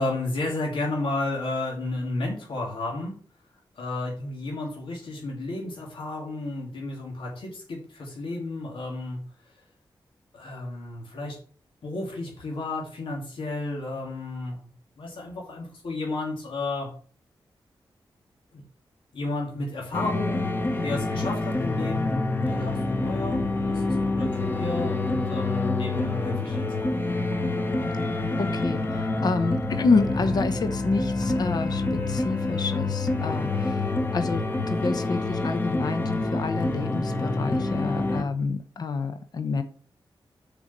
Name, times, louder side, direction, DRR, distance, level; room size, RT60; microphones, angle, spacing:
voice 1, 0.0-3.2 3.8-9.2 10.3-11.4 11.8-14.7 15.0-16.9 18.5-18.6 19.1-20.6 20.8-26.7, left 2 dB, 90° left, -2 dB, 2.8 m, -32 dB
sound 1, 19.9-38.2, left 2 dB, 25° left, 1.0 m, -27 dB
voice 2, 28.4-39.6, left 4 dB, 50° left, 9 dB, 0.9 m, -28 dB
7.0 x 5.3 x 7.3 m, 0.43 s
wide cardioid pair, 180°, 9 cm